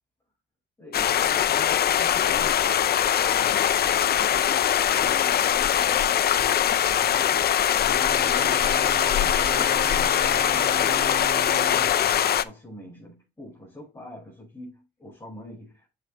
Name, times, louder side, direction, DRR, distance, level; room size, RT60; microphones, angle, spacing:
voice 1, 0.8-11.1 11.7-15.9, left 1 dB, 15° left, 5.2 m, -44 dB
sound 1, 0.9-12.4, left 10 dB, 55° left, 0.5 m, -22 dB
sound 2, 8.0-12.0, right 6 dB, 30° right, 0.5 m, -37 dB
8.8 x 7.6 x 2.3 m
cardioid pair, 90°, 20 cm